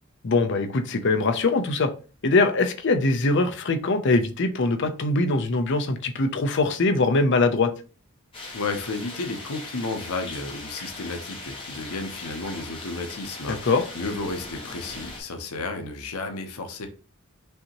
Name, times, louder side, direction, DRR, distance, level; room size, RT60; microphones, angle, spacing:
voice 1, 0.2-1.9 2.2-7.7 13.5-13.8, left 3 dB, 55° left, 8 dB, 0.6 m, -22 dB
sound 1, 8.3-15.2, left 2 dB, 25° left, 1.3 m, -39 dB
voice 2, 8.5-16.9, left 3 dB, 85° left, 6 dB, 0.8 m, -32 dB
5.4 x 2.8 x 2.9 m, 0.36 s
head